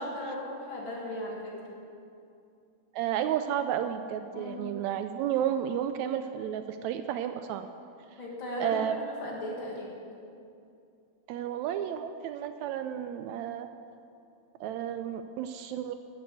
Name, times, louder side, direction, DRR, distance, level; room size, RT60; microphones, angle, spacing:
voice 1, 0.0-1.8 4.3-4.7 8.2-9.9, left 1 dB, 45° left, -2 dB, 2.3 m, -37 dB
voice 2, 2.9-7.7 8.6-8.9 11.3-13.7 14.6-15.9, right 10 dB, 80° right, 9 dB, 1.8 m, -32 dB
12.5 x 7.7 x 8.0 m, 2.5 s
omnidirectional pair, 3.4 m